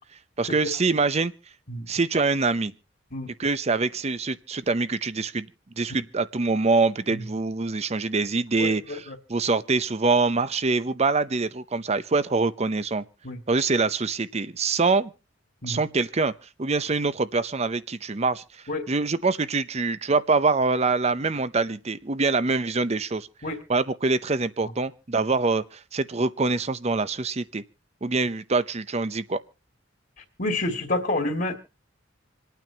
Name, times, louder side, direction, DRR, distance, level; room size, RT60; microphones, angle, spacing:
voice 1, 0.4-1.3 1.9-2.7 3.4-5.5 5.8-13.0 13.5-15.1 15.6-16.3 16.6-18.4 18.9-23.3 23.7-27.6 28.0-29.4, right 3 dB, 35° right, 14 dB, 0.7 m, -24 dB
voice 2, 8.6-9.2 13.2-13.4 15.6-15.8 18.7-18.9 23.4-23.6 30.4-31.5, left 2 dB, 50° left, 2 dB, 2.1 m, -28 dB
27.5 x 9.2 x 2.8 m, 0.32 s
head